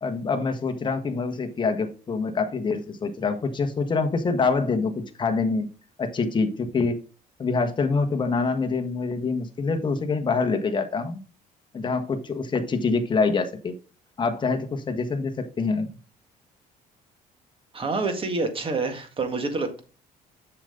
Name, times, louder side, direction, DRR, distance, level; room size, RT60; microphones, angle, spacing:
voice 1, 0.0-5.7 6.0-7.0 7.4-11.2 11.7-13.7 14.2-15.9, left 4 dB, 25° left, 5 dB, 1.3 m, -25 dB
voice 2, 17.7-19.8, right 3 dB, 30° right, 6 dB, 1.9 m, -27 dB
7.2 x 6.8 x 3.8 m, 0.35 s
cardioid pair, 110°, 17 cm